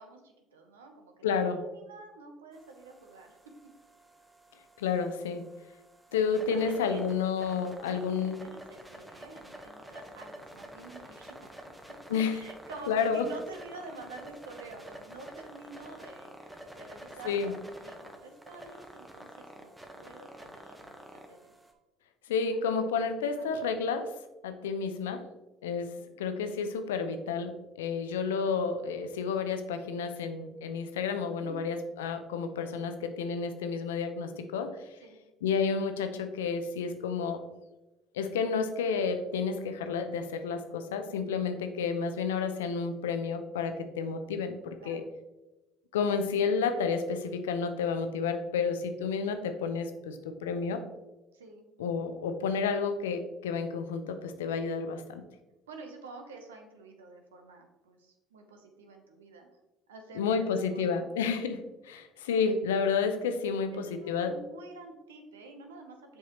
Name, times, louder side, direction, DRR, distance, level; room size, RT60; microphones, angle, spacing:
voice 1, 0.0-1.2 1.6-3.4 6.1-6.2 6.5-7.0 7.7-11.5 12.3-21.5 22.4-22.6 23.3-23.6 26.0-26.2 31.4-31.7 35.0-35.2 44.8-45.1 51.3-51.7 55.7-59.5 59.9-61.1 63.7-66.2, right 3 dB, 90° right, 4 dB, 0.9 m, -49 dB
voice 2, 1.2-1.6 4.8-5.4 6.1-8.4 12.1-12.4 12.9-13.3 17.3-17.5 22.3-24.1 24.4-25.2 25.6-34.7 35.4-37.4 38.1-45.0 45.9-50.8 51.8-55.2 60.1-64.3, left 5 dB, 85° left, 8 dB, 0.5 m, -30 dB
sound 1, 2.5-21.7, equal, 10° right, 1.1 m, -49 dB
7.3 x 4.7 x 3.0 m, 1.1 s
hypercardioid pair, 65°, 0 cm